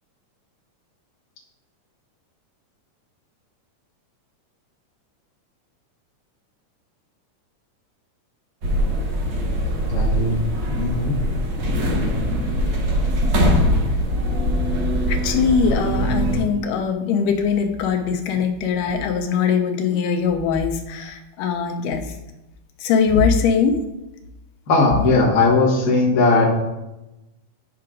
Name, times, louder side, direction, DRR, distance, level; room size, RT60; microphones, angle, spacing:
sound 1, 8.6-16.4, equal, 75° right, 1.0 m, -22 dB
voice 1, 9.9-10.4 10.7-11.2 24.7-26.5, left 3 dB, 40° left, -5 dB, 1.3 m, -18 dB
voice 2, 15.1-22.0 22.8-23.8, left 6 dB, 90° left, 5 dB, 2.2 m, -21 dB
10.0 x 5.7 x 2.5 m, 0.99 s
omnidirectional pair, 3.7 m